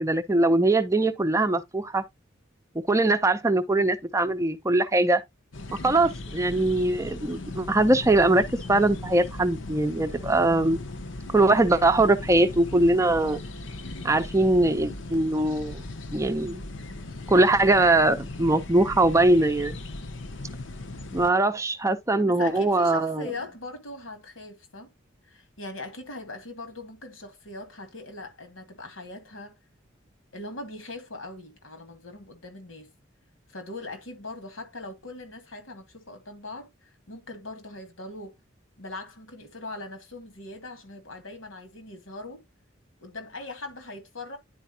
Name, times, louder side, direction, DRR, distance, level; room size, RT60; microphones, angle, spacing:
voice 1, 0.0-2.0 2.7-5.2 5.7-10.8 11.3-13.4 14.0-15.8 16.1-16.6 17.3-19.8 21.1-23.3, right 2 dB, 15° right, 0.6 m, -22 dB
sound 1, 5.5-21.3, left 2 dB, 70° left, 0.9 m, -38 dB
voice 2, 22.2-24.9 25.2-29.6 30.3-32.9 33.5-38.3 38.8-42.4 43.0-44.4, left 2 dB, 90° left, 2.2 m, -40 dB
10.0 x 4.6 x 2.8 m
head